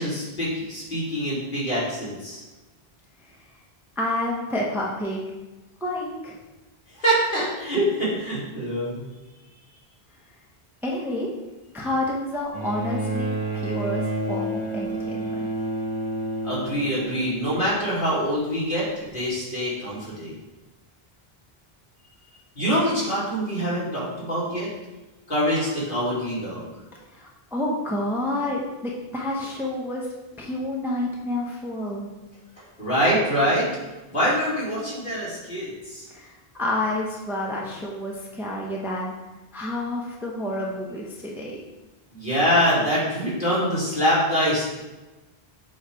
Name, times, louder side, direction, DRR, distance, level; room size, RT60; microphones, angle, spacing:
voice 1, 0.0-2.4 6.9-9.0 16.4-20.3 22.6-24.7 25.3-26.6 32.8-33.7 34.1-36.1 42.1-44.6, equal, 55° left, -8 dB, 2.7 m, -24 dB
voice 2, 4.0-5.3 5.8-6.4 10.8-11.3 11.7-13.3 13.6-15.5 27.1-30.1 30.4-32.1 36.1-39.1 39.5-41.6, left 1 dB, ahead, -3 dB, 0.8 m, -29 dB
Bowed string instrument, 12.5-18.0 19.1-19.2, right 1 dB, 30° right, 1.0 m, -30 dB
7.6 x 3.2 x 4.7 m, 1.1 s
omnidirectional pair, 1.0 m